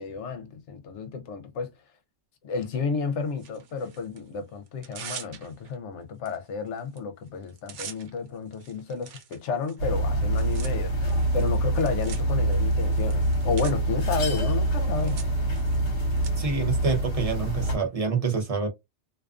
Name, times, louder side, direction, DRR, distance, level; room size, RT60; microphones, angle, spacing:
voice 1, 0.0-1.7 2.4-15.2, left 5 dB, 75° left, 0.9 m, -31 dB
Tearing, 3.4-4.2 4.7-5.7 6.3-6.4 6.7-7.0 7.3-16.3, right 8 dB, 85° right, 0.9 m, -45 dB
sound 1, 9.8-17.8, right 1 dB, 55° left, 1.1 m, -25 dB
voice 2, 16.4-18.7, right 5 dB, 40° right, 0.6 m, -27 dB
2.4 x 2.3 x 2.3 m
omnidirectional pair, 1.2 m